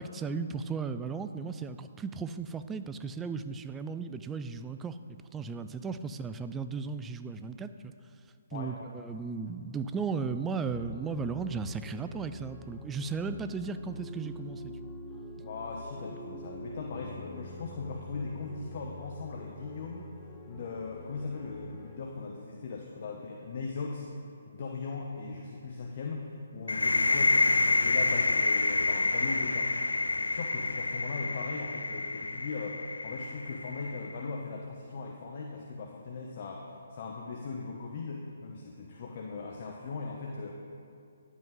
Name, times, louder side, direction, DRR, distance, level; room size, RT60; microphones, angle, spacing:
voice 1, 0.0-7.9 8.5-14.7, right 5 dB, 10° right, 11 dB, 0.3 m, -36 dB
sound 1, 10.7-22.0, left 1 dB, 15° left, 0.7 m, -46 dB
voice 2, 15.4-20.1 20.5-24.1 24.5-29.7 30.0-40.5, left 4 dB, 50° left, 0 dB, 0.9 m, -39 dB
sound 2, 26.7-34.2, left 2 dB, 90° left, 0.5 m, -28 dB
10.5 x 8.1 x 3.8 m, 2.5 s
hypercardioid pair, 145°, 0 cm